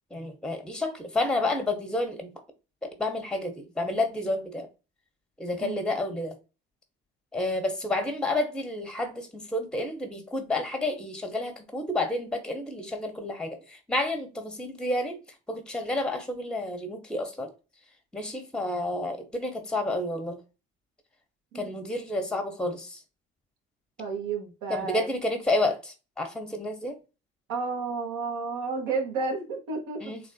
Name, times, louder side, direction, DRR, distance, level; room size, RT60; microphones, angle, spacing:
voice 1, 0.1-2.3 2.8-4.7 5.4-6.3 7.3-15.2 15.5-17.5 18.1-20.4 21.5-23.0 24.7-27.0 30.0-30.2, left 2 dB, 5° left, 0.7 m, -30 dB
voice 2, 24.0-25.1 27.5-30.0, right 4 dB, 65° right, 0.9 m, -31 dB
3.3 x 2.5 x 2.3 m
figure-of-eight pair, 50°, 34 cm